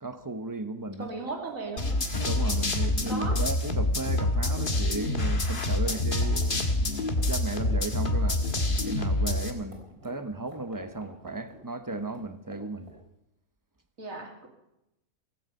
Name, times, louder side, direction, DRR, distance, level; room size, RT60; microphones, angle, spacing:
voice 1, 0.0-1.1 2.2-8.5 8.8-13.0, right 2 dB, 15° right, 0.7 m, -35 dB
sound 1, 0.9-5.5 5.9-6.0 6.2-8.0 8.2-13.0, right 2 dB, 80° right, 4.7 m, -50 dB
voice 2, 1.0-2.0 3.1-3.4 14.0-14.5, right 3 dB, 65° right, 3.2 m, -36 dB
sound 2, 1.8-9.5, left 2 dB, 35° left, 1.7 m, -27 dB
16.0 x 15.5 x 5.4 m
omnidirectional pair, 1.5 m